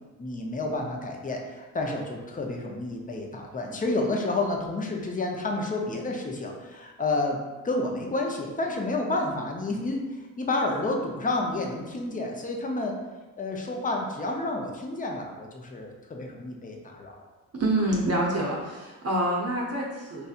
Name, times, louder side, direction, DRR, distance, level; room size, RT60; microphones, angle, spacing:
voice 1, 0.2-7.4 7.6-13.0 13.4-17.1, left 2 dB, 20° left, 1 dB, 0.7 m, -30 dB
voice 2, 17.5-20.3, right 1 dB, 35° right, -3 dB, 0.8 m, -27 dB
4.4 x 2.6 x 2.4 m, 1.2 s
hypercardioid pair, 50°, 40 cm